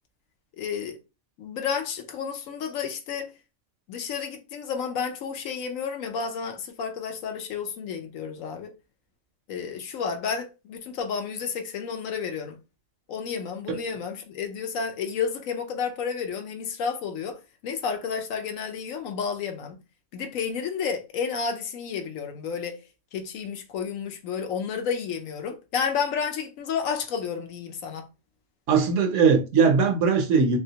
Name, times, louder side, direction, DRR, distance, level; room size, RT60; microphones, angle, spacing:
voice 1, 0.6-1.0 1.4-3.3 3.9-8.7 9.5-12.5 13.1-19.8 20.1-22.8 23.1-28.1, left 6 dB, 70° left, 1.0 m, -31 dB
voice 2, 28.7-30.6, right 5 dB, 65° right, 0.8 m, -20 dB
3.3 x 2.7 x 2.7 m
omnidirectional pair, 1.5 m